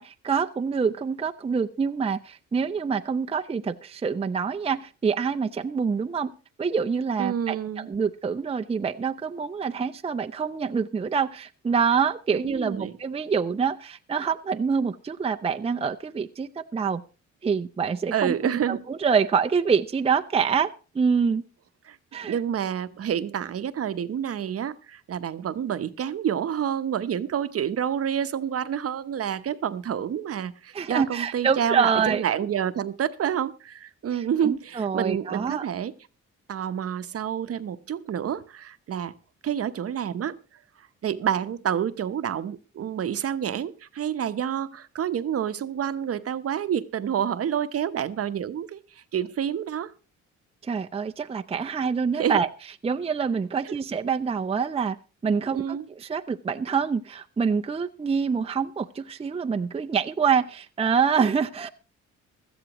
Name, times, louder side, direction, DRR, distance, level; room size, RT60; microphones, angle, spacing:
voice 1, 0.0-6.3 6.6-17.0 17.4-21.4 22.1-22.4 30.7-32.2 34.1-35.7 50.6-52.5 52.8-55.0 55.2-61.7, right 6 dB, 20° right, 0.6 m, -26 dB
voice 2, 7.2-7.9 12.3-12.9 18.1-18.8 21.9-22.0 22.3-35.9 36.5-39.1 39.4-40.4 41.0-49.9 52.1-52.4 53.6-53.7 55.5-55.8, right 9 dB, 50° right, 0.9 m, -28 dB
16.5 x 13.0 x 3.0 m
cardioid pair, 90°, 30 cm